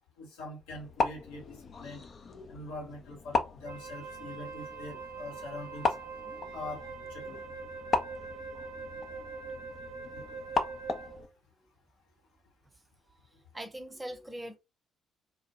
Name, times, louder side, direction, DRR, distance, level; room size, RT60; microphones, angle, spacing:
voice 1, 0.2-2.1 2.5-5.9 6.5-6.8 7.1-7.4 10.4-10.5, left 2 dB, 75° left, 0.8 m, -43 dB
sound 1, 0.7-11.3, left 4 dB, 45° left, 0.4 m, -36 dB
Wind instrument woodwind instrument, 3.6-11.3, right 4 dB, 75° right, 0.5 m, -43 dB
voice 2, 13.3-14.6, right 1 dB, 15° right, 0.6 m, -41 dB
2.1 x 2.0 x 2.9 m
figure-of-eight pair, 45°, 0 cm